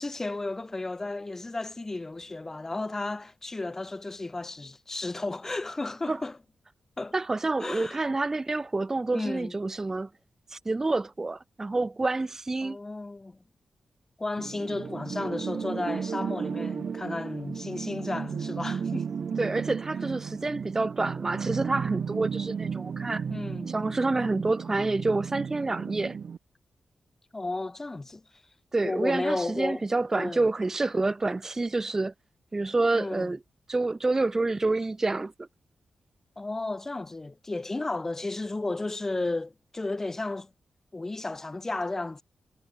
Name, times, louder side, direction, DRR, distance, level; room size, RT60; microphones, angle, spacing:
voice 1, 0.0-6.4 7.0-7.1 7.6-8.0 9.1-9.5 12.6-13.4 14.2-19.1 23.3-23.7 27.3-28.2 28.8-29.9 30.1-30.4 32.9-33.3 36.4-40.5 40.9-42.2, left 2 dB, 20° left, 0.9 m, -33 dB
voice 2, 7.1-10.1 10.5-12.8 19.4-23.2 23.7-26.2 28.7-32.1 32.5-33.4 33.7-35.5, right 3 dB, 20° right, 0.6 m, -28 dB
sound 1, 14.4-26.4, right 6 dB, 55° right, 1.2 m, -34 dB
wide cardioid pair, 155°, 2 cm